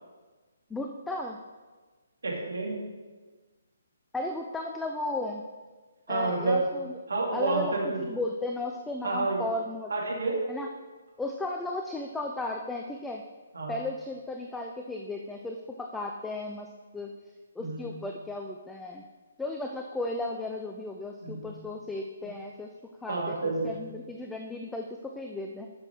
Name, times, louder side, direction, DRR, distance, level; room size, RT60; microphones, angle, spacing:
voice 1, 0.7-1.4 4.1-5.4 6.1-6.9 7.3-9.9 10.5-10.7 11.2-13.2 13.7-17.1 17.6-19.0 19.4-22.7 23.0-25.7, left 2 dB, 5° left, 2 dB, 0.6 m, -35 dB
voice 2, 2.2-2.8 6.1-6.6 7.1-8.0 9.0-9.4 9.9-10.4 13.5-13.8 17.6-17.8 21.2-21.5 23.1-23.7, right 3 dB, 70° right, -2 dB, 2.6 m, -29 dB
10.5 x 6.7 x 4.5 m, 1.4 s
figure-of-eight pair, 135°, 0 cm